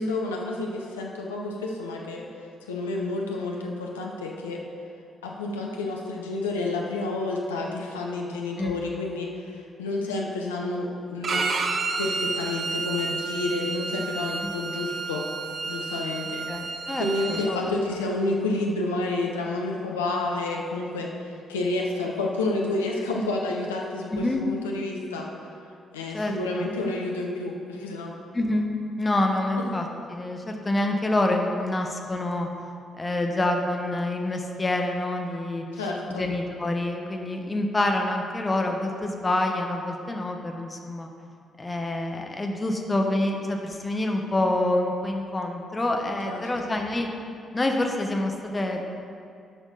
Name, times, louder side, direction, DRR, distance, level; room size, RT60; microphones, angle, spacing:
voice 1, 0.1-2.3 2.7-4.6 5.2-9.5 9.8-11.4 12.0-15.2 15.7-16.4 17.0-25.3 25.9-28.1 35.7-36.3 46.3-46.7, left 2 dB, 80° left, -1 dB, 0.8 m, -29 dB
Bowed string instrument, 11.2-17.5, right 4 dB, 50° right, 0.6 m, -30 dB
voice 2, 16.5-17.8 24.1-24.4 26.1-26.7 28.3-32.5 33.0-41.1 41.6-47.1 47.5-48.8, left 1 dB, 25° left, 2 dB, 1.0 m, -27 dB
11.0 x 6.1 x 3.9 m, 2.4 s
figure-of-eight pair, 40°, 0 cm